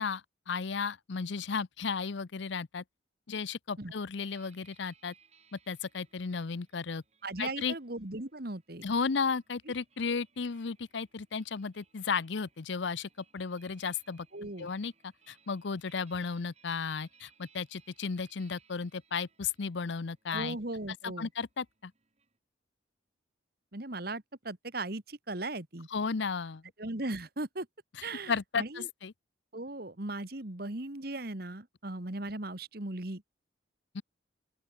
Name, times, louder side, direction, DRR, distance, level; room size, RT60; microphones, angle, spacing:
voice 1, 0.0-2.8 3.3-5.1 5.5-7.0 7.4-7.7 8.8-14.3 14.6-20.6 21.0-21.9 25.9-26.6 28.3-29.1 33.9-34.0, left 5 dB, 70° left, 0.6 m, -34 dB
sound 1, 4.1-22.4, right 6 dB, 35° right, 7.3 m, -67 dB
voice 2, 7.2-8.8 14.3-14.7 20.3-21.3 23.7-25.9 26.8-27.7 28.0-28.9 29.5-33.2, right 2 dB, 50° right, 1.8 m, -38 dB
open air
head